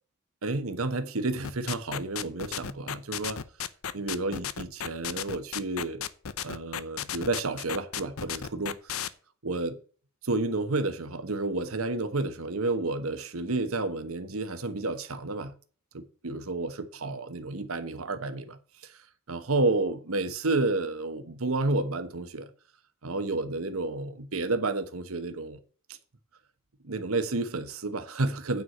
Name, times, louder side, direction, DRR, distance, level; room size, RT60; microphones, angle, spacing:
voice 1, 0.4-3.4 3.9-6.0 6.4-8.7 9.4-9.8 10.2-15.5 15.9-22.5 23.0-25.6 25.9-26.0 26.8-28.6, right 2 dB, 85° right, 1.2 m, -31 dB
sound 1, 1.4-9.1, left 8 dB, 80° left, 0.7 m, -34 dB
9.3 x 4.7 x 7.7 m
head